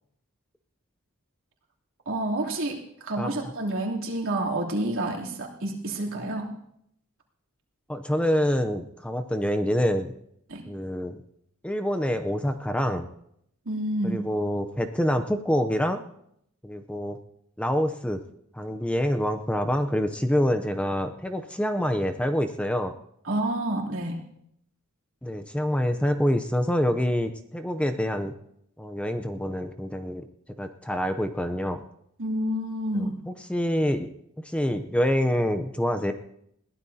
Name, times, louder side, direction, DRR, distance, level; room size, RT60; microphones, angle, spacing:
voice 1, 2.0-6.5 10.5-10.6 13.6-14.2 23.2-24.2 32.2-33.2, right 1 dB, 65° right, -2 dB, 3.0 m, -29 dB
voice 2, 7.9-10.1 10.7-11.2 11.6-13.1 14.0-16.0 16.6-17.2 17.6-18.2 18.5-22.9 25.2-28.3 28.8-30.3 30.6-31.8 33.3-34.1 34.4-36.1, equal, 5° left, 8 dB, 0.6 m, -26 dB
21.5 x 15.5 x 2.8 m, 0.74 s
head